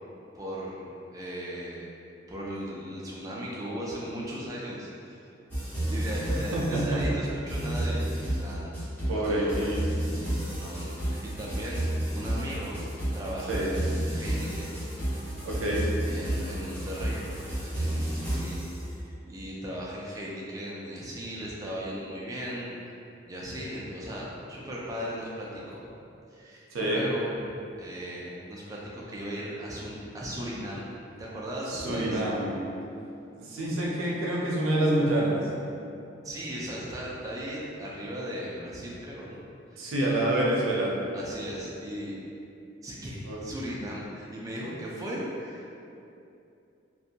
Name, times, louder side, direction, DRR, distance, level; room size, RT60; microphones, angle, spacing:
voice 1, 0.3-1.9 2.3-5.2 5.9-8.7 9.1-9.7 10.5-11.8 12.1-12.8 13.1-14.8 16.0-23.0 23.3-25.8 26.3-27.3 27.8-30.9 31.2-32.2 36.2-39.4 39.7-40.1 41.1-42.1 42.8-45.7, equal, 15° right, -5 dB, 0.3 m, -37 dB
sound 1, 5.5-18.7, right 1 dB, 10° left, 0.7 m, -31 dB
voice 2, 6.3-7.0 7.6-7.7 9.1-9.9 13.5-13.7 15.4-15.9 26.7-27.0 31.7-32.6 33.4-35.4 39.8-40.9 43.3-43.4, right 1 dB, 85° right, -4 dB, 0.5 m, -27 dB
2.5 x 2.2 x 2.8 m, 2.7 s
head